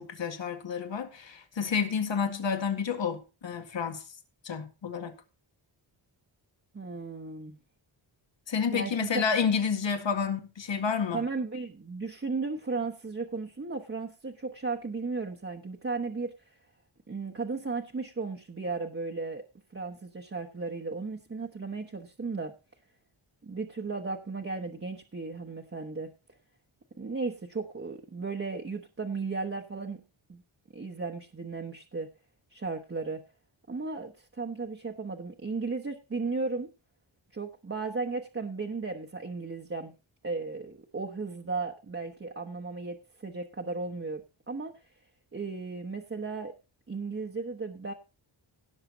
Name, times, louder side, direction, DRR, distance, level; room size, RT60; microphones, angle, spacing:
voice 1, 0.0-4.0 4.4-5.1 8.5-11.2, left 6 dB, 65° left, 2.0 m, -30 dB
voice 2, 6.7-7.6 8.7-9.2 11.1-16.6 17.1-19.5 19.7-22.5 23.4-26.1 27.0-30.0 30.3-30.4 30.7-32.1 32.5-33.2 33.7-36.7 37.3-39.9 40.2-44.8 45.3-46.5 46.9-47.9, right 4 dB, 30° right, 1.1 m, -35 dB
17.0 x 6.7 x 4.0 m
wide cardioid pair, 110°, 47 cm